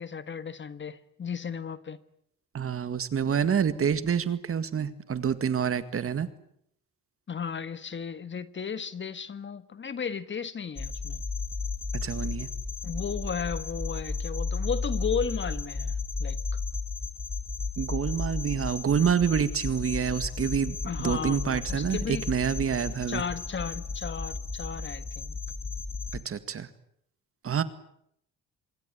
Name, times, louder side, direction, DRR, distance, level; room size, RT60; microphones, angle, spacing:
voice 1, 0.0-2.0 7.3-11.2 12.8-16.4 20.8-22.2 23.1-25.4, left 6 dB, 40° left, 13 dB, 1.5 m, -34 dB
voice 2, 2.5-6.3 12.0-12.5 17.8-23.2 26.1-26.7 27.4-27.6, right 7 dB, 45° right, 12 dB, 2.0 m, -27 dB
sound 1, 10.8-26.2, left 4 dB, 20° left, 2.0 m, -34 dB
26.0 x 23.0 x 8.5 m, 0.72 s
cardioid pair, 90°, 30 cm